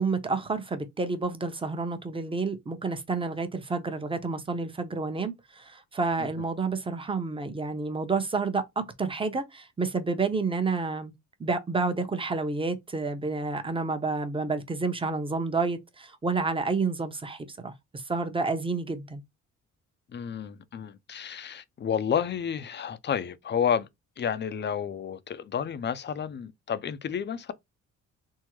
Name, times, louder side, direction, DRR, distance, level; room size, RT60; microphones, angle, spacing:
voice 1, 0.0-11.1 11.4-19.2, right 4 dB, 15° right, 0.8 m, -29 dB
voice 2, 20.1-23.9 24.2-27.5, left 8 dB, 35° left, 0.5 m, -30 dB
3.6 x 2.1 x 3.0 m
cardioid pair, 90°, 30 cm